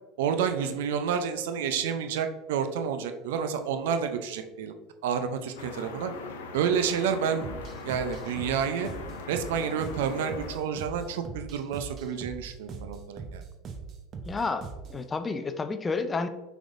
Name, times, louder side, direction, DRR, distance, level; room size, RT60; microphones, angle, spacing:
voice 1, 0.2-4.7 5.0-6.1 6.5-7.6 7.8-8.9 9.3-13.4, right 7 dB, 80° right, 8 dB, 0.5 m, -29 dB
sound 1, 5.6-10.6, left 4 dB, 85° left, 0.6 m, -41 dB
sound 2, 7.4-15.0, right 5 dB, 45° right, 0.7 m, -41 dB
voice 2, 14.3-16.3, left 4 dB, 20° left, 10 dB, 0.4 m, -30 dB
5.8 x 3.5 x 2.6 m, 1.1 s
hypercardioid pair, 95°, 0 cm